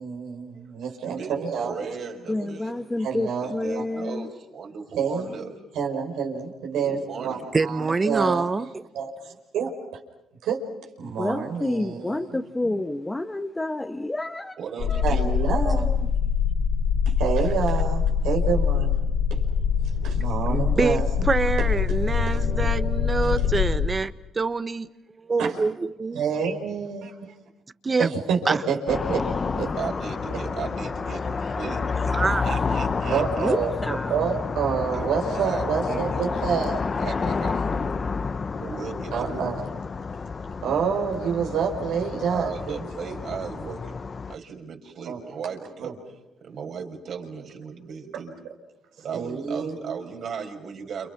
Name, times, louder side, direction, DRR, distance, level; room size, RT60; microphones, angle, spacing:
voice 1, 0.0-1.7 2.4-2.5 3.0-3.8 5.0-5.4 5.7-8.5 8.9-9.7 10.4-10.7 11.0-12.3 15.0-15.9 17.1-19.0 19.3-19.4 20.0-21.0 21.9-22.0 22.3-22.4 25.4-25.5 26.1-27.3 28.0-29.7 33.1-36.8 39.1-39.6 40.6-43.2 45.0-45.2 45.8-45.9 49.1-49.7, right 6 dB, 85° right, 1 dB, 5.4 m, -28 dB
voice 2, 1.0-2.9 3.2-5.5 6.8-7.5 14.6-15.2 29.8-31.8 32.4-33.5 34.9-35.1 35.3-36.3 36.9-37.7 38.6-39.4 42.3-44.0 44.3-46.1 46.4-48.3 49.0-51.1, right 6 dB, 65° right, 2 dB, 6.0 m, -36 dB
voice 3, 2.3-4.3 11.0-14.5 14.9-15.0 15.5-16.0 33.4-34.2, left 2 dB, 15° left, 4 dB, 1.4 m, -29 dB
voice 4, 7.5-8.8 20.5-24.9 25.2-26.2 27.8-28.1 28.4-28.6 32.1-32.5, right 4 dB, 30° right, 12 dB, 1.3 m, -25 dB
sound 1, 14.8-23.9, left 6 dB, 70° left, 3.6 m, -24 dB
sound 2, 28.9-44.3, left 4 dB, 40° left, 1.0 m, -29 dB
30.0 x 29.5 x 6.1 m, 0.92 s
cardioid pair, 90°, 0 cm